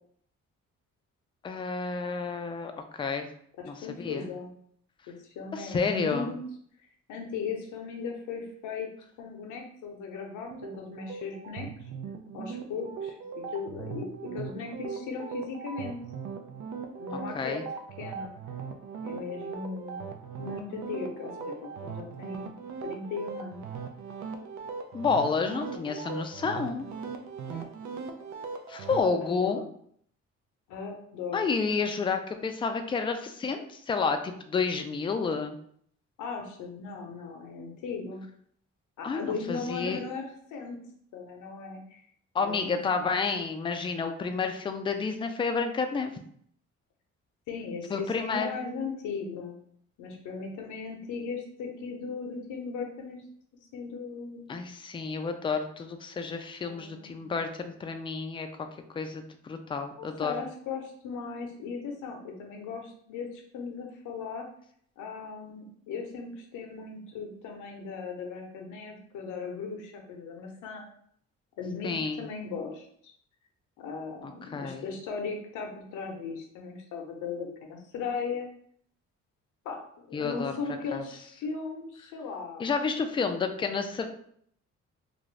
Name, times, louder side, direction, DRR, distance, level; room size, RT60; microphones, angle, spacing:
voice 1, 1.4-3.3 3.7-4.3 5.5-6.3 17.3-17.6 24.9-26.9 28.7-29.6 31.3-35.6 39.0-40.0 42.3-46.2 47.9-48.6 54.5-58.5 58.9-60.3 71.8-72.2 74.2-74.8 80.1-80.5 80.9-81.0 82.6-84.0, left 4 dB, 20° left, 6 dB, 0.3 m, -30 dB
voice 2, 3.6-4.5 5.1-6.4 7.1-8.9 9.2-11.7 12.3-16.0 17.0-17.6 18.0-18.3 19.0-20.0 20.4-21.5 21.8-22.5 22.8-23.6 27.5-27.7 29.2-29.6 30.7-31.4 36.2-38.3 39.0-40.8 41.1-42.0 42.4-43.1 47.5-49.5 50.0-53.2 53.7-54.5 56.6-57.2 60.0-64.5 65.0-70.9 71.6-73.1 73.8-78.5 79.6-82.7, left 5 dB, 85° left, 2 dB, 0.7 m, -37 dB
sound 1, 10.4-29.0, right 5 dB, 70° right, 0.5 m, -39 dB
2.6 x 2.5 x 3.1 m, 0.64 s
cardioid pair, 90°, 30 cm